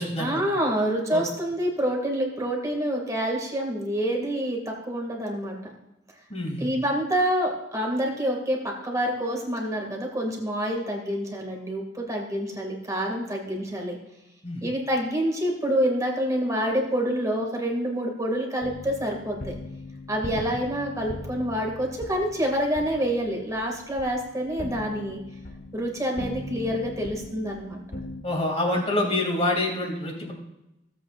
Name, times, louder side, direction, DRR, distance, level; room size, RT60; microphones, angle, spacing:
voice 1, 0.2-5.6 6.6-14.0 14.6-19.6 20.1-25.2 25.7-27.8, equal, 20° right, 0 dB, 2.3 m, -27 dB
voice 2, 6.3-6.7 14.4-14.6 28.2-30.3, left 1 dB, 35° left, 0 dB, 2.6 m, -26 dB
sound 1, 18.6-28.2, left 2 dB, 55° left, 1.2 m, -39 dB
16.5 x 8.1 x 2.5 m, 0.92 s
head